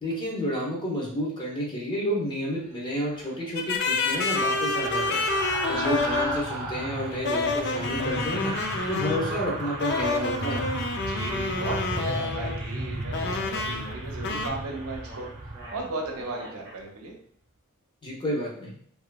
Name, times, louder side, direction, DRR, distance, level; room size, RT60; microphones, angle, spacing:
voice 1, 0.0-5.3 5.7-8.5 8.9-10.6 18.0-18.8, equal, 20° left, -3 dB, 0.7 m, -30 dB
sound 1, 3.0-16.3 16.7-16.9, right 2 dB, 50° right, 0.9 m, -35 dB
sound 2, 3.6-6.5 7.2-9.3 9.8-12.6 13.1-14.0 14.2-14.5, left 3 dB, 50° left, 0.3 m, -28 dB
voice 2, 11.1-15.3 15.7-17.1, right 3 dB, 80° right, 0 dB, 0.6 m, -36 dB
sound 3, 12.7-16.8, right 1 dB, 20° right, 0.7 m, -46 dB
2.9 x 2.4 x 2.2 m, 0.62 s
head